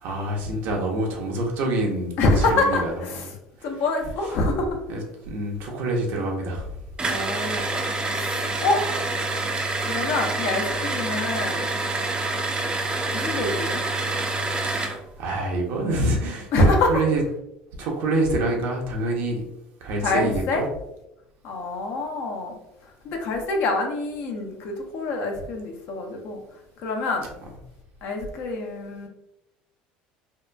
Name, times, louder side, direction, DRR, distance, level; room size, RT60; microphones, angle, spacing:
voice 1, 0.0-3.3 4.9-6.7 15.2-17.2 17.8-19.4 19.8-20.7, right 2 dB, 65° right, 0 dB, 0.7 m, -26 dB
voice 2, 2.2-3.3 3.6-4.8 7.1-8.8 9.8-11.7 13.1-13.8 16.5-17.0 20.0-20.6 21.4-22.6 23.0-26.4 26.8-27.3 28.0-29.1, left 2 dB, 65° left, 2 dB, 0.6 m, -25 dB
sound 1, 7.0-15.0, right 2 dB, 25° right, 0.4 m, -27 dB
2.7 x 2.4 x 2.2 m, 0.85 s
supercardioid pair, 85°, 4 cm